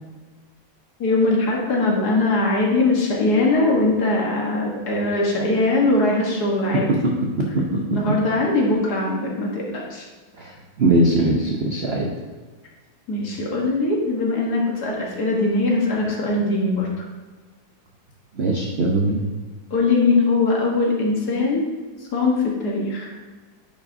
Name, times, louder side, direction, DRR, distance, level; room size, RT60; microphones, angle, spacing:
voice 1, 1.0-6.9 7.9-10.0 13.1-16.9 19.7-21.6 22.1-23.1, left 2 dB, 55° left, -2 dB, 1.7 m, -21 dB
voice 2, 6.7-7.1 7.4-8.0 10.4-12.1 18.3-19.2, right 2 dB, 70° right, -1 dB, 0.6 m, -21 dB
9.6 x 5.4 x 2.7 m, 1.4 s
omnidirectional pair, 2.1 m